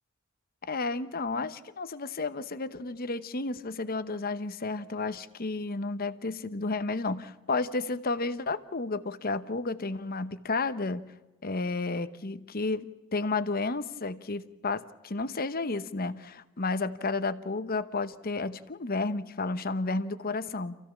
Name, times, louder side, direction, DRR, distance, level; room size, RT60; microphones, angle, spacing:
voice 1, 0.6-11.0 11.4-20.8, left 3 dB, 45° left, 13 dB, 0.9 m, -32 dB
28.0 x 16.0 x 7.3 m, 1.1 s
head